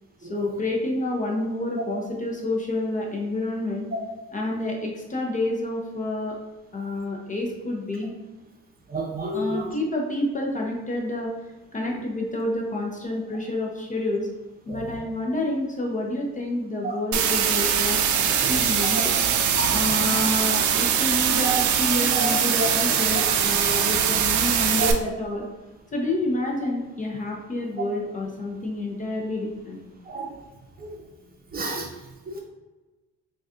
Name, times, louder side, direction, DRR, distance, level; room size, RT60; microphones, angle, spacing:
voice 1, 0.2-3.9 4.3-6.3 6.7-8.1 9.3-11.3 11.7-14.3 14.7-18.0 18.5-21.5 21.8-25.4 25.9-29.8, left 1 dB, 25° left, -1 dB, 0.6 m, -28 dB
voice 2, 8.9-9.7 16.8-16.9 18.4-18.5 19.5-19.8 21.4-21.6 22.1-22.3 24.8-24.9 30.1-30.3 30.8-30.9 31.5-31.9 32.3-32.4, right 2 dB, 30° right, -1 dB, 0.7 m, -29 dB
sound 1, 17.1-24.9, right 8 dB, 75° right, 0.5 m, -22 dB
3.9 x 2.3 x 2.4 m, 1.1 s
cardioid pair, 90°, 30 cm